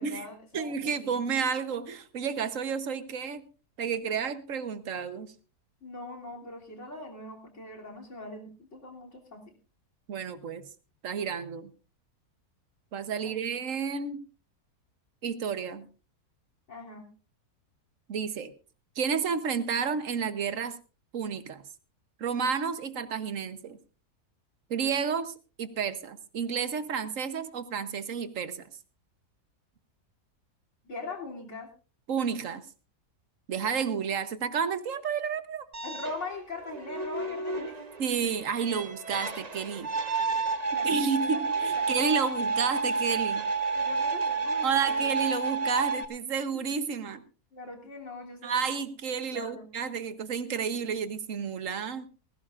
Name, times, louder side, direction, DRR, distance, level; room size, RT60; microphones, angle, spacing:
voice 1, 0.0-1.2 5.8-9.5 13.2-13.4 16.7-17.1 30.8-31.7 35.8-37.8 40.7-42.6 43.7-45.0 46.5-46.6 47.5-48.7 49.2-49.7, left 3 dB, 50° left, 0 dB, 3.4 m, -41 dB
voice 2, 0.5-3.5 3.8-5.3 10.1-10.7 11.0-11.7 12.9-14.2 15.2-15.9 18.1-18.5 19.0-20.8 21.1-21.6 22.2-23.8 24.7-28.7 32.1-32.6 33.5-35.6 38.0-39.9 40.8-43.5 44.6-47.2 48.4-52.1, right 6 dB, 60° right, 12 dB, 1.3 m, -31 dB
sound 1, 35.7-46.1, right 4 dB, 30° right, 1.0 m, -30 dB
19.5 x 16.0 x 2.5 m, 0.34 s
omnidirectional pair, 1.6 m